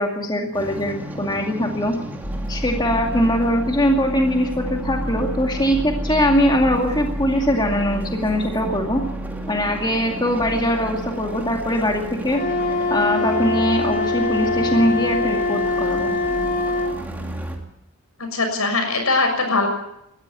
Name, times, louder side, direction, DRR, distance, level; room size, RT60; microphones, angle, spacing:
voice 1, 0.0-1.9 2.5-9.0 9.5-12.4 12.9-16.1, equal, 20° left, 2 dB, 2.2 m, -21 dB
sound 1, 0.5-17.6, right 1 dB, 10° right, 2.5 m, -31 dB
Wind instrument woodwind instrument, 12.3-16.9, left 2 dB, 40° left, 4.5 m, -23 dB
voice 2, 18.2-19.7, left 3 dB, 80° left, 4 dB, 6.5 m, -21 dB
20.5 x 14.0 x 9.7 m, 0.80 s
head